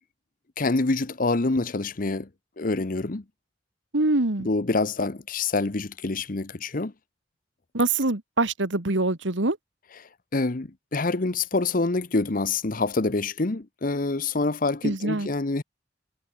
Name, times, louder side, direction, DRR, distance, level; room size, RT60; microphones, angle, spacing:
voice 1, 0.6-2.3 2.6-3.2 4.4-6.9 10.3-15.6, left 3 dB, 45° left, 0.9 m, -26 dB
voice 2, 3.9-4.5 7.7-9.6 14.8-15.3, right 2 dB, 85° right, 2.0 m, -24 dB
head